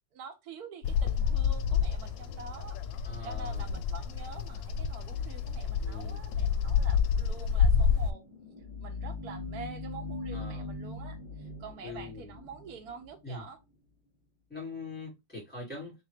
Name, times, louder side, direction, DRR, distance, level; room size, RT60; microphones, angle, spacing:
voice 1, 0.1-8.2 8.8-13.6, right 5 dB, 60° right, 1.2 m, -46 dB
Bird vocalization bird call bird song, 0.8-8.1, left 7 dB, 75° left, 1.2 m, -29 dB
voice 2, 3.0-3.7 5.8-6.2 10.3-10.7 11.8-12.3 13.2-13.4 14.5-15.9, left 3 dB, 5° left, 2.6 m, -42 dB
sound 1, 8.0-13.5, left 3 dB, 35° left, 0.8 m, -41 dB
3.7 x 3.2 x 3.2 m
omnidirectional pair, 2.0 m